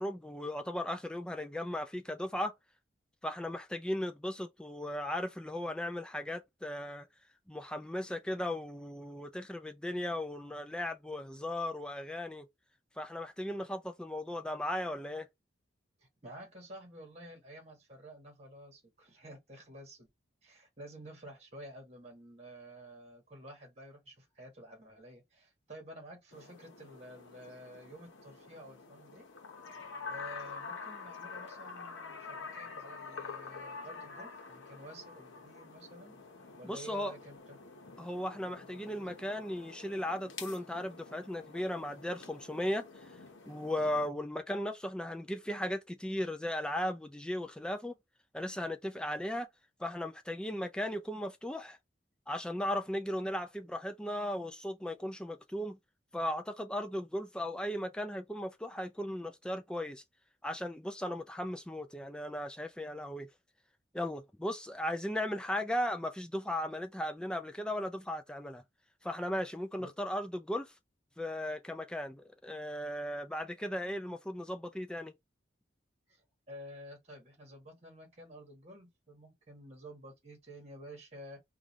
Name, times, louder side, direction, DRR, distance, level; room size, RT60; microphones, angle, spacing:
voice 1, 0.0-2.5 3.2-7.1 7.5-12.5 13.0-15.3 36.6-37.1 38.0-43.1 43.5-47.9 48.3-49.5 49.8-51.8 52.3-55.8 56.1-60.0 60.4-63.3 63.9-68.6 69.0-70.7 71.2-75.1, left 1 dB, 5° left, 0.3 m, -37 dB
voice 2, 16.0-20.1 20.4-29.3 30.1-36.1 36.6-37.6 69.8-69.9 76.1-81.4, right 1 dB, 35° right, 1.4 m, -51 dB
sound 1, 26.3-44.1, left 4 dB, 75° left, 0.9 m, -47 dB
3.8 x 2.4 x 3.0 m
head